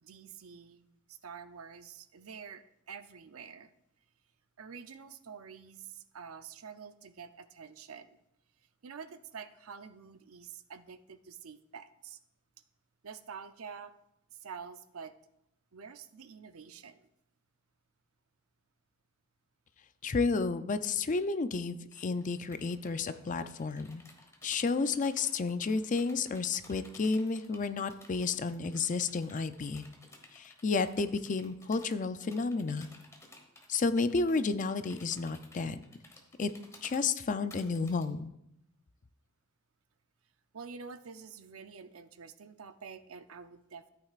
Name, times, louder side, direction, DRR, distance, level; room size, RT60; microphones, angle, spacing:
voice 1, 0.0-3.7 4.6-8.2 8.8-12.2 13.0-13.9 14.3-15.1 15.7-17.1 40.5-43.9, right 6 dB, 85° right, 11 dB, 0.6 m, -48 dB
voice 2, 20.0-24.0 24.4-29.8 30.3-32.9 33.7-35.8 36.4-36.5 36.8-38.3, left 4 dB, 40° left, 11 dB, 0.5 m, -31 dB
sound 1, 21.9-38.0, left 2 dB, 15° left, 1.4 m, -57 dB
13.5 x 8.8 x 2.5 m, 0.83 s
head